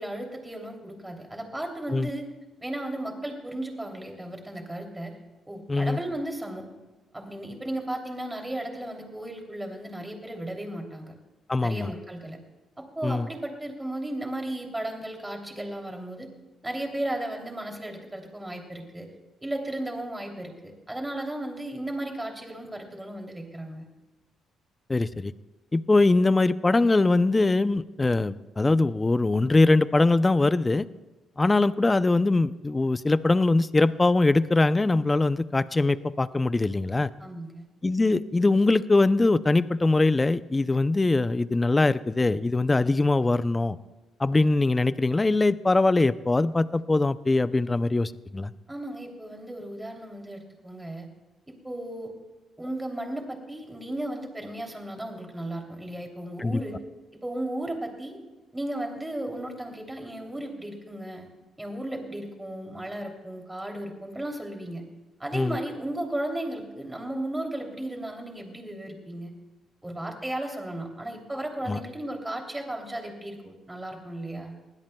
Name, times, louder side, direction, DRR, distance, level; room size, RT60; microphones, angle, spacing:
voice 1, 0.0-2.3 2.6-5.2 5.5-6.7 7.1-11.1 11.6-12.4 13.0-16.3 16.6-19.1 19.4-23.9 37.2-37.7 48.7-51.1 51.5-52.1 52.6-56.8 57.2-58.2 58.5-61.3 61.6-64.9 65.2-69.4 69.8-74.5, right 1 dB, 10° right, 2 dB, 3.0 m, -35 dB
voice 2, 11.5-11.9 13.0-13.3 24.9-25.3 25.7-30.9 31.4-37.1 37.8-43.8 44.2-48.5 56.4-56.6 65.3-65.6 71.7-71.8, left 2 dB, 20° left, 14 dB, 0.5 m, -22 dB
21.5 x 16.5 x 2.3 m, 1.2 s
cardioid pair, 90°, 0 cm